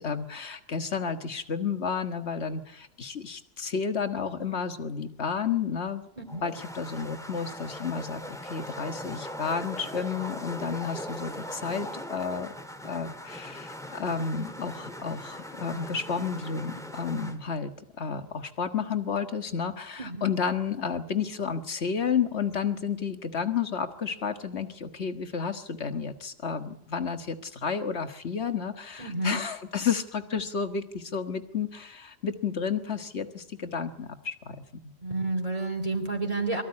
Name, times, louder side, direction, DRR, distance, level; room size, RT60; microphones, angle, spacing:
voice 1, 0.0-6.0 6.4-12.5 12.8-34.9, left 6 dB, 75° left, 8 dB, 1.9 m, -31 dB
voice 2, 6.2-6.5 20.0-20.3 29.0-29.4 35.0-36.6, right 2 dB, 30° right, 2 dB, 3.1 m, -30 dB
sound 1, 6.3-17.4, equal, 5° left, 2.1 m, -40 dB
23.5 x 15.5 x 9.7 m, 0.84 s
omnidirectional pair, 1.1 m